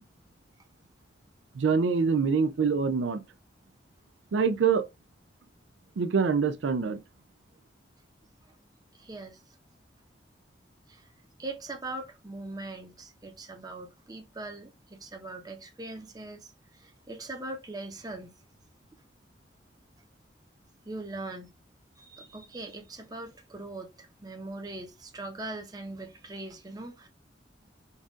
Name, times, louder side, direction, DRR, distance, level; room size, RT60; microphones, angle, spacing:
voice 1, 1.6-3.2 4.3-4.9 6.0-7.0, right 5 dB, 85° right, 0.4 m, -25 dB
voice 2, 8.9-9.4 10.9-11.1 11.4-18.4 20.8-21.5 22.0-27.1, right 2 dB, 20° right, 0.8 m, -41 dB
4.0 x 2.4 x 3.6 m
head